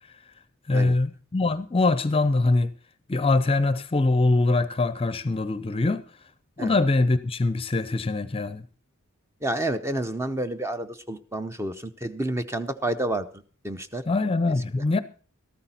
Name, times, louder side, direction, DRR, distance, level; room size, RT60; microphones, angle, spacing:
voice 1, 0.7-2.7 3.1-6.0 6.6-8.6 14.1-15.0, left 2 dB, 25° left, 0.6 m, -23 dB
voice 2, 9.4-14.0 14.8-14.9, right 1 dB, 10° right, 0.7 m, -30 dB
13.5 x 13.0 x 4.3 m
head